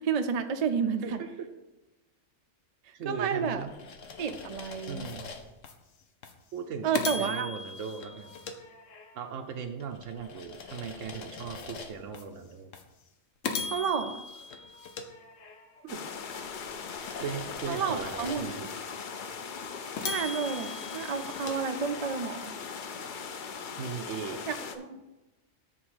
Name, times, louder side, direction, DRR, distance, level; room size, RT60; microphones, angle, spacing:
voice 1, 0.0-1.2 3.0-3.7 4.2-5.0 6.8-7.5 13.7-14.2 17.7-18.7 20.0-22.5 24.5-25.0, right 6 dB, 55° right, 7 dB, 0.4 m, -31 dB
voice 2, 1.0-1.5 2.9-3.7 4.9-5.3 6.5-8.3 9.1-12.7 15.8-16.0 17.2-18.6 23.8-24.4, right 6 dB, 85° right, 4 dB, 1.0 m, -38 dB
sound 1, 3.3-5.7 6.2-6.4 6.9-9.3 9.8-12.2 12.7-12.9 13.4-15.8 16.3-18.7 19.2-19.3 20.0-22.3, left 5 dB, 85° left, 1.2 m, -40 dB
sound 2, 15.9-24.8, left 6 dB, 50° left, 0.6 m, -39 dB
7.8 x 3.7 x 6.2 m, 1.0 s
omnidirectional pair, 1.3 m